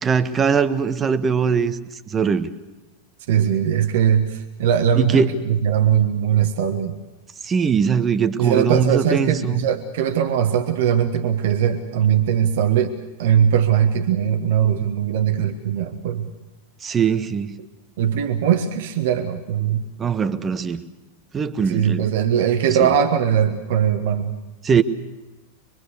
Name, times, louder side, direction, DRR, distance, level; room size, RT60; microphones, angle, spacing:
voice 1, 0.0-1.8 2.1-2.5 5.0-5.3 7.4-9.7 16.8-17.5 20.0-20.8 21.3-22.1 22.8-22.9 24.6-24.8, right 6 dB, 20° right, 12 dB, 1.3 m, -21 dB
voice 2, 3.3-7.0 8.4-16.3 18.0-19.9 21.7-24.3, right 9 dB, 55° right, 6 dB, 1.5 m, -20 dB
25.5 x 22.5 x 6.7 m, 1.1 s
figure-of-eight pair, 90°, 0 cm